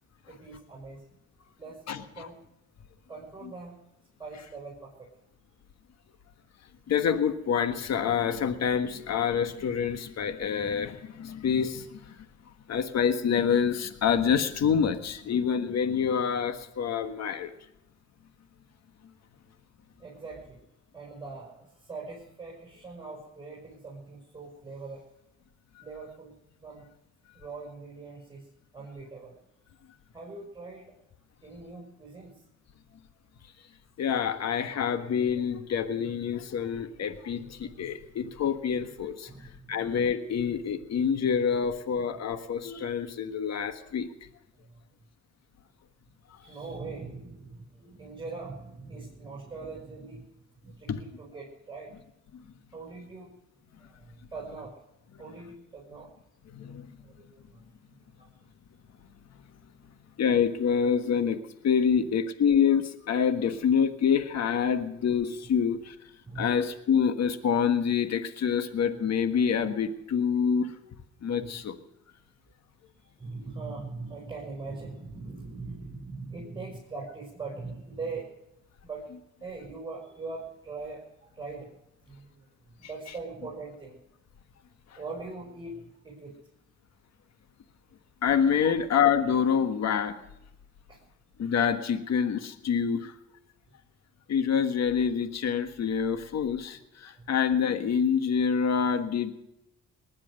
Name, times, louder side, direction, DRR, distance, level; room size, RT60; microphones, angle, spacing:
voice 1, 0.2-1.2 1.6-2.4 3.1-3.8 4.2-5.1 20.0-20.6 20.9-25.1 25.8-26.9 27.3-29.4 30.1-30.9 31.4-32.5 37.6-37.7 39.3-40.0 44.6-44.8 46.4-50.3 50.6-51.9 52.7-53.3 53.8-54.7 55.2-56.1 56.5-58.3 61.9-62.2 66.2-66.6 71.4-71.5 73.0-78.3 78.8-79.1 79.4-81.7 82.0-84.0 84.9-86.3 88.6-88.7 90.9-91.0 97.1-97.3, right 3 dB, 15° right, -3 dB, 6.1 m, -42 dB
voice 2, 1.9-2.3 6.9-12.3 12.7-17.5 34.0-39.3 39.7-44.1 46.3-46.4 50.9-51.0 52.3-52.4 56.5-56.9 60.2-61.4 61.6-66.0 66.4-70.7 71.2-71.8 88.2-90.2 91.4-93.1 94.3-99.3, left 7 dB, 60° left, 10 dB, 1.5 m, -27 dB
19.5 x 10.5 x 6.5 m, 0.89 s
cardioid pair, 90°, 30 cm